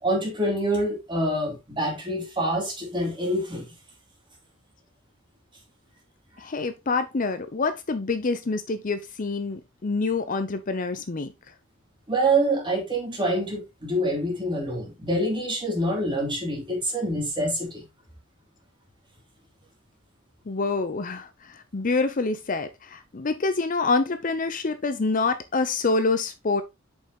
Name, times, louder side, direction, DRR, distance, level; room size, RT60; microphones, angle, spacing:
voice 1, 0.0-3.7 12.1-17.9, right 1 dB, 25° right, 2.7 m, -26 dB
voice 2, 6.4-11.3 20.5-26.6, left 3 dB, 45° left, 0.6 m, -26 dB
6.8 x 5.4 x 2.9 m
head